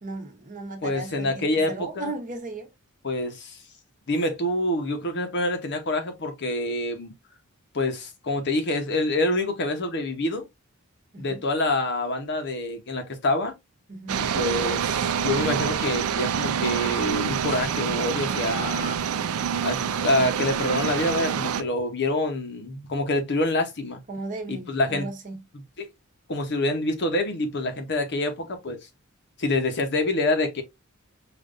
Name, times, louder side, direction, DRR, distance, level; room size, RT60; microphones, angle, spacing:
voice 1, 0.0-2.7 11.1-11.4 13.9-14.2 24.1-25.4, right 2 dB, 35° right, 0.9 m, -36 dB
voice 2, 0.8-2.1 3.0-3.6 4.1-7.1 7.7-10.5 11.2-13.5 14.2-19.0 19.6-24.0 24.5-25.1 25.8-25.9 26.3-28.8 29.4-30.6, left 2 dB, 55° left, 0.9 m, -26 dB
sound 1, 14.1-21.6, right 7 dB, 80° right, 0.4 m, -26 dB
5.0 x 2.5 x 2.5 m
head